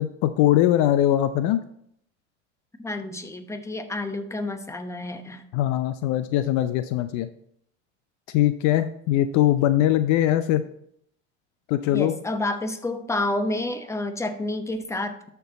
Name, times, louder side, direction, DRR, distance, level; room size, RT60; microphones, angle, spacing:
voice 1, 0.0-1.6 5.5-7.3 8.3-10.6 11.7-12.1, left 12 dB, 50° left, 12 dB, 0.6 m, -21 dB
voice 2, 2.8-5.4 11.9-15.3, left 2 dB, 10° left, 7 dB, 1.0 m, -29 dB
12.5 x 4.6 x 4.0 m, 0.70 s
hypercardioid pair, 90°, 36 cm